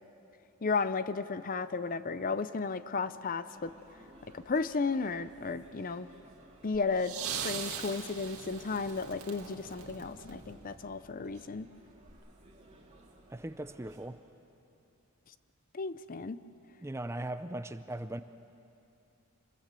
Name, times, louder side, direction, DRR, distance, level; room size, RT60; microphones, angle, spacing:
voice 1, 0.6-3.7 4.3-6.1 6.6-11.7 15.7-16.4, left 4 dB, 40° left, 14 dB, 0.5 m, -34 dB
sound 1, 3.5-14.1, right 1 dB, 30° right, 2.5 m, -58 dB
sound 2, 6.7-10.9 12.1-12.2, right 7 dB, 75° right, 2.0 m, -41 dB
voice 2, 13.3-14.2 16.8-18.2, right 1 dB, 10° right, 11 dB, 0.5 m, -39 dB
26.5 x 21.5 x 7.5 m, 2.8 s
head